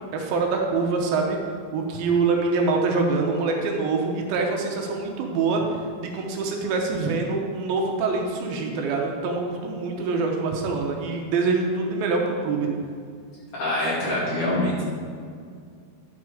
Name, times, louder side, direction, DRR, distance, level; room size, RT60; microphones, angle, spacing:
voice 1, 0.1-1.4 1.7-5.6 6.0-12.7, right 4 dB, 75° right, 1 dB, 2.7 m, -25 dB
voice 2, 13.5-14.8, left 1 dB, 40° left, -8 dB, 2.9 m, -25 dB
11.0 x 5.2 x 4.8 m, 2.2 s
omnidirectional pair, 4.4 m